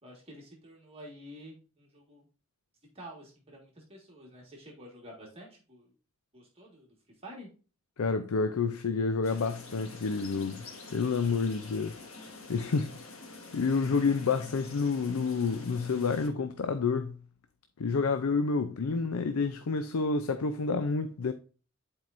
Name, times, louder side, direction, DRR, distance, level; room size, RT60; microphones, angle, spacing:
voice 1, 0.0-2.3 2.9-5.9 6.3-6.9 7.2-7.5, equal, 25° right, 1.7 m, -49 dB
voice 2, 8.0-10.7 10.9-12.0 12.5-13.1 13.5-17.2 17.8-21.3, left 4 dB, 90° left, 0.5 m, -29 dB
sound 1, 9.2-16.3, left 3 dB, 70° left, 1.6 m, -47 dB
10.5 x 4.5 x 2.6 m
head